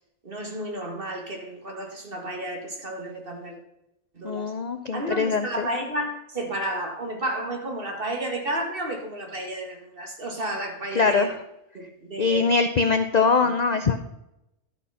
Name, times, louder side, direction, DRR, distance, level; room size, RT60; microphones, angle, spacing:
voice 1, 0.2-3.6 4.2-4.4 4.9-11.3 11.7-12.5 13.4-13.5, right 1 dB, 40° right, 2 dB, 2.1 m, -32 dB
voice 2, 4.2-5.7 10.9-11.4 12.2-14.0, left 4 dB, 65° left, 8 dB, 0.4 m, -22 dB
12.0 x 6.2 x 5.6 m, 0.88 s
omnidirectional pair, 1.5 m